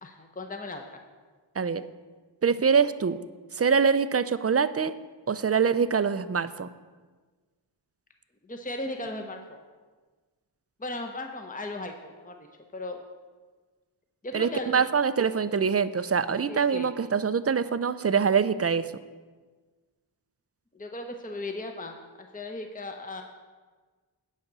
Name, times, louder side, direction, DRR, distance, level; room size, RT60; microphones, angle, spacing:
voice 1, 0.0-1.0 8.4-9.6 10.8-12.5 12.7-13.0 14.2-14.8 16.5-16.9 20.7-23.2, left 2 dB, 20° left, 4 dB, 0.8 m, -37 dB
voice 2, 2.4-3.2 3.5-4.9 5.3-6.7 14.3-18.9, right 6 dB, 35° right, 14 dB, 0.4 m, -24 dB
9.6 x 5.1 x 6.8 m, 1.4 s
wide cardioid pair, 50°, 44 cm